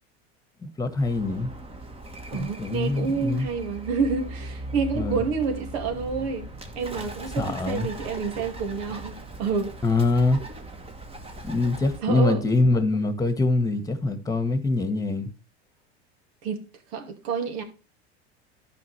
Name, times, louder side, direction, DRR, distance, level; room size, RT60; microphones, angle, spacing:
voice 1, 0.6-1.5 2.3-3.5 4.9-5.2 7.4-7.9 9.8-10.4 11.4-15.3, left 2 dB, 10° left, 1.6 m, -24 dB
Bird, 1.0-12.0, right 1 dB, 15° right, 1.5 m, -39 dB
voice 2, 2.3-6.5 6.8-9.7 12.0-12.4 16.4-16.6 16.9-17.6, right 5 dB, 70° right, 2.4 m, -28 dB
12.5 x 5.3 x 3.3 m
hypercardioid pair, 95°, 33 cm